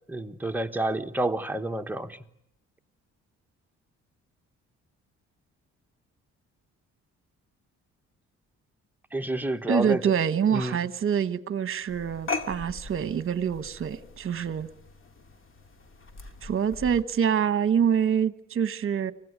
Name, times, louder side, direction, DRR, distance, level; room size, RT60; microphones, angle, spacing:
voice 1, 0.1-2.2 9.1-10.0 10.5-10.8, right 1 dB, 5° right, 1.3 m, -29 dB
voice 2, 9.7-14.7 16.4-19.1, right 8 dB, 45° right, 1.2 m, -26 dB
sound 1, 11.9-17.0, left 3 dB, 45° left, 2.5 m, -39 dB
25.0 x 17.0 x 9.6 m
cardioid pair, 90°, 30 cm